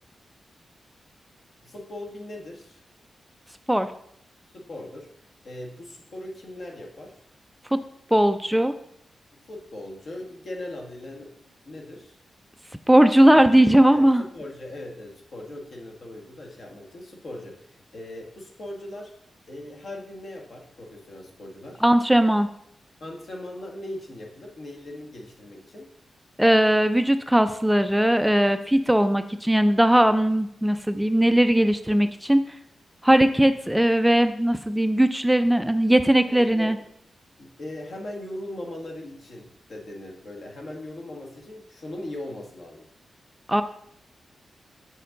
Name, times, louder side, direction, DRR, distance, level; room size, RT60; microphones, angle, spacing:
voice 1, 1.6-2.8 4.5-5.1 5.4-7.2 9.3-11.4 11.6-12.1 13.9-19.1 19.5-21.8 23.0-25.9 36.3-36.8 37.4-42.9, left 1 dB, 65° left, 0 dB, 1.6 m, -39 dB
voice 2, 8.1-8.8 12.9-14.2 21.8-22.5 26.4-32.5 33.0-36.8 43.5-43.6, right 1 dB, 5° right, 9 dB, 0.4 m, -19 dB
7.6 x 6.5 x 3.8 m, 0.71 s
wide cardioid pair, 95°, 0 cm